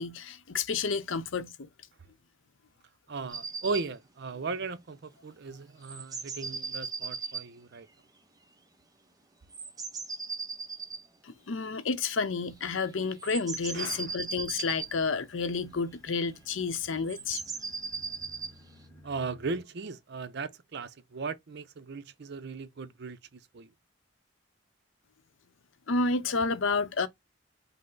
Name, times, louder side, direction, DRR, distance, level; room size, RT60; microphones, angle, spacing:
voice 1, 0.0-1.7 11.2-17.4 25.9-27.1, left 4 dB, 75° left, 0.6 m, -30 dB
voice 2, 3.1-7.9 13.7-14.1 19.0-23.7, right 4 dB, 55° right, 0.5 m, -37 dB
sound 1, 3.3-3.9 5.8-7.4 9.5-11.0 13.0-14.9 17.0-18.5, right 4 dB, 20° right, 0.7 m, -37 dB
sound 2, 13.6-19.6, equal, 10° left, 1.1 m, -56 dB
5.5 x 2.0 x 3.8 m
head